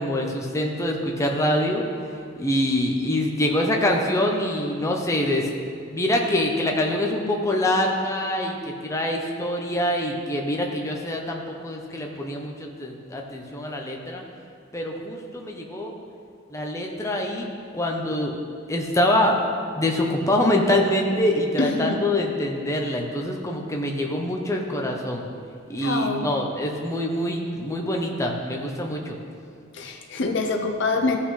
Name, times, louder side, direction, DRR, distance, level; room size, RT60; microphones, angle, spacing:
voice 1, 0.0-1.8 2.4-5.5 5.9-14.2 14.7-15.9 16.5-17.5 17.7-18.3 18.7-19.4 19.7-25.3 25.7-29.2, left 1 dB, 15° left, 0 dB, 0.8 m, -25 dB
voice 2, 21.6-22.0 25.8-26.3 29.7-31.2, left 3 dB, 65° left, 4 dB, 0.7 m, -25 dB
14.5 x 5.8 x 3.3 m, 2.2 s
head